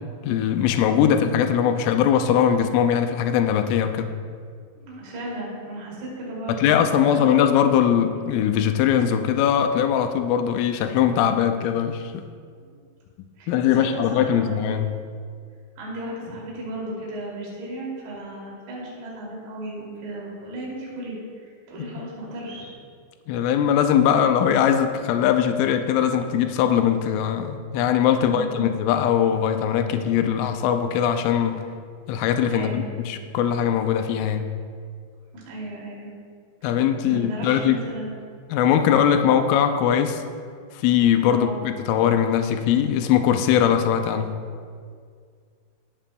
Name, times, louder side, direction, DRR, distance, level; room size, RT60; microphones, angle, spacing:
voice 1, 0.2-4.1 6.5-12.2 13.5-14.9 23.3-31.6 32.1-34.4 36.6-37.8 38.5-40.2 40.7-44.4, left 9 dB, 85° left, 7 dB, 3.1 m, -21 dB
voice 2, 4.7-7.4 12.6-12.7 13.4-14.8 15.8-22.7 28.2-28.8 32.5-32.9 35.5-36.1 36.6-38.1 41.3-41.6, right 1 dB, 60° right, -5 dB, 4.6 m, -35 dB
22.0 x 8.7 x 2.3 m, 2.1 s
omnidirectional pair, 5.6 m